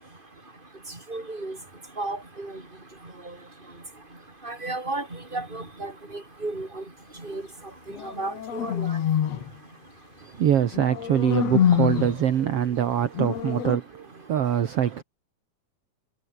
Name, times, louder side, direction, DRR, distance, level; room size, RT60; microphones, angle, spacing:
voice 1, 1.1-1.6 2.0-2.5 4.4-5.0 5.3-5.9 6.4-6.8 7.2-7.4 8.0-9.0, right 2 dB, 15° right, 4.8 m, -32 dB
sound 1, 7.9-9.5 10.7-12.2 13.1-13.8, left 9 dB, 65° left, 2.7 m, -25 dB
voice 2, 10.3-15.0, right 10 dB, 60° right, 2.4 m, -24 dB
omnidirectional pair, 3.3 m